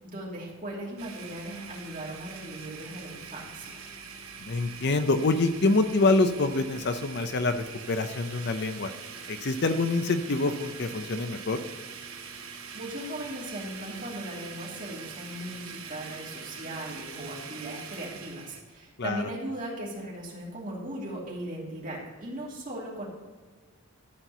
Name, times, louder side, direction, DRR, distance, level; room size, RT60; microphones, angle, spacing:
voice 1, 0.0-3.8 12.7-23.1, right 1 dB, 40° right, -4 dB, 2.9 m, -38 dB
Domestic sounds home sounds, 1.0-18.6, right 6 dB, 80° right, 1.3 m, -43 dB
voice 2, 4.4-8.9 9.3-11.6 19.0-19.2, left 3 dB, 55° left, 9 dB, 0.6 m, -26 dB
13.0 x 4.6 x 6.7 m, 1.4 s
head